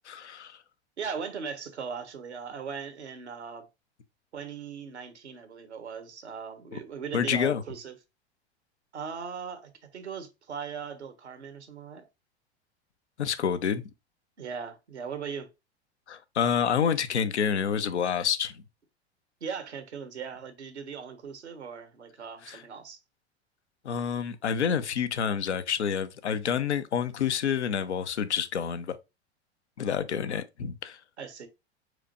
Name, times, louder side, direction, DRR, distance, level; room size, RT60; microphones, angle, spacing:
voice 1, 0.1-0.6 7.1-7.6 13.2-13.8 16.1-18.5 22.5-22.6 23.8-29.0 29.8-31.0, left 7 dB, 85° left, 0.8 m, -28 dB
voice 2, 1.0-3.7 4.3-7.9 8.9-12.0 14.4-15.5 19.4-23.0 31.2-31.5, right 6 dB, 85° right, 1.3 m, -39 dB
4.9 x 4.3 x 2.5 m
hypercardioid pair, 90°, 33 cm